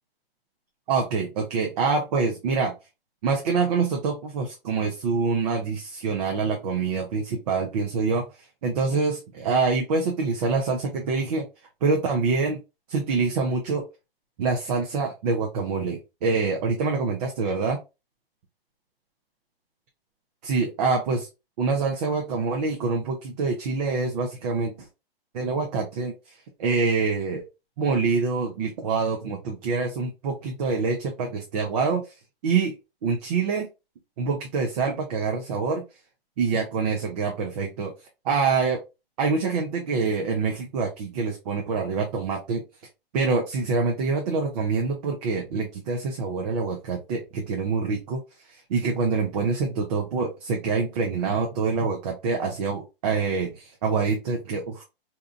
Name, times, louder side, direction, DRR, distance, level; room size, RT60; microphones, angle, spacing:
voice 1, 0.9-2.7 3.2-8.2 8.6-11.5 11.8-12.6 12.9-13.8 14.4-17.8 20.4-21.3 21.6-24.9 25.3-27.4 27.8-32.2 32.4-32.7 33.0-33.7 34.2-35.8 36.4-38.8 39.2-42.6 43.1-54.8, right 4 dB, 40° right, 1 dB, 0.6 m, -26 dB
2.7 x 2.4 x 2.4 m, 0.26 s
hypercardioid pair, 130°, 30 cm